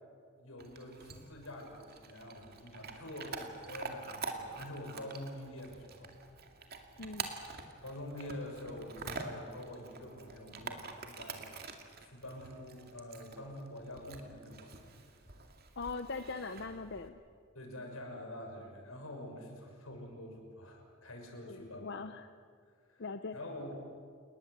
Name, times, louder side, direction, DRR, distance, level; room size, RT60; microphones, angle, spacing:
voice 1, 0.4-6.1 7.8-11.6 12.0-14.8 17.5-21.8 22.9-23.0 23.3-23.7, left 1 dB, 85° left, 2 dB, 6.2 m, -46 dB
Chewing mastication / Dog, 0.6-17.1, right 4 dB, 50° right, 2.4 m, -47 dB
voice 2, 7.0-7.3 15.8-17.2 21.5-22.3 23.0-23.4, left 4 dB, 55° left, 9 dB, 0.8 m, -41 dB
29.0 x 20.0 x 8.2 m, 2.1 s
head